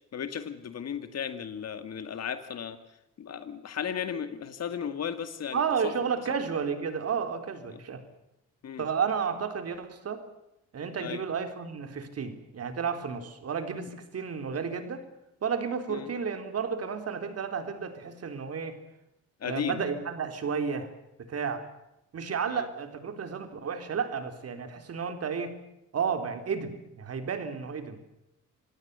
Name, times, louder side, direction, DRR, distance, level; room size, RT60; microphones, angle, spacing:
voice 1, 0.1-2.8 3.2-5.9 7.7-7.8 8.6-8.9 11.0-11.2 15.9-16.1 19.4-19.8 22.5-22.7, left 8 dB, 55° left, 10 dB, 2.1 m, -35 dB
voice 2, 5.5-8.0 8.8-10.2 10.7-15.0 15.4-18.8 19.4-20.9 21.3-21.6 22.1-25.6 25.9-28.0, right 6 dB, 55° right, 8 dB, 3.8 m, -32 dB
27.5 x 17.0 x 6.9 m, 0.84 s
cardioid pair, 90°, 30 cm